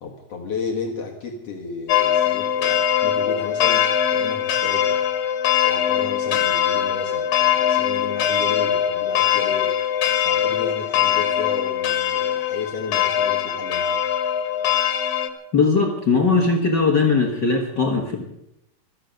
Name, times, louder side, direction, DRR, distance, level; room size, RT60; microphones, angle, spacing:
voice 1, 0.0-5.0 5.6-9.7 10.2-14.0, left 5 dB, 60° left, 2 dB, 2.4 m, -33 dB
sound 1, 1.9-15.3, left 10 dB, 85° left, 2.9 m, -21 dB
voice 2, 15.5-18.2, left 4 dB, 45° left, 1 dB, 1.9 m, -19 dB
16.0 x 13.5 x 6.5 m, 0.80 s
omnidirectional pair, 3.3 m